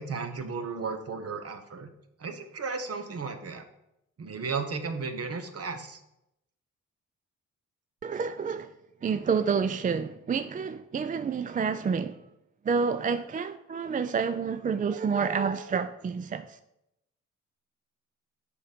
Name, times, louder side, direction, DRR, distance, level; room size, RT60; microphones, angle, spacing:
voice 1, 0.0-1.9 2.2-3.7 4.2-6.0, right 4 dB, 50° right, 1.1 m, -34 dB
voice 2, 8.0-8.7 9.0-12.2 12.6-16.6, right 6 dB, 25° right, 0.3 m, -29 dB
7.0 x 5.1 x 5.1 m
cardioid pair, 75°, 31 cm